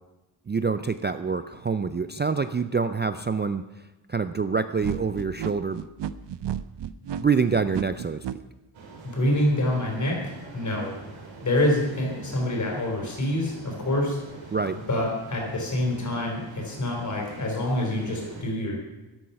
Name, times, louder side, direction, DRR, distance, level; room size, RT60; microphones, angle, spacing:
voice 1, 0.5-3.6 4.1-5.8 7.2-8.2 14.5-14.8, right 5 dB, 25° right, 11 dB, 0.3 m, -26 dB
sound 1, 4.8-8.4, right 9 dB, 65° right, 0.7 m, -32 dB
sound 2, 8.7-18.4, right 4 dB, 85° right, 2.8 m, -44 dB
voice 2, 9.0-11.0 11.4-14.2 14.9-18.8, left 1 dB, 40° left, -1 dB, 4.1 m, -26 dB
12.5 x 12.0 x 5.7 m, 1.1 s
wide cardioid pair, 155°, 46 cm